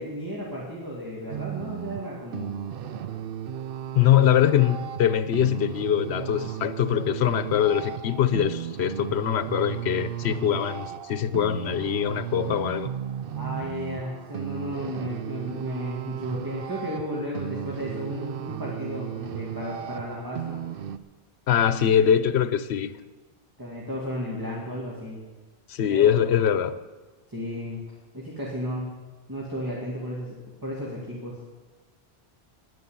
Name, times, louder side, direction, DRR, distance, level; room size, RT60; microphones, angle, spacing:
voice 1, 0.0-2.6 13.3-20.6 23.6-25.2 25.8-26.3 27.3-27.8 28.1-28.9 29.3-31.4, equal, 20° right, -4 dB, 2.3 m, -34 dB
sound 1, 1.3-21.0, right 9 dB, 65° right, 0.8 m, -35 dB
voice 2, 3.9-12.9 21.5-23.0 25.7-26.8, left 9 dB, 85° left, 13 dB, 1.0 m, -23 dB
11.0 x 9.6 x 8.7 m, 1.3 s
omnidirectional pair, 1.1 m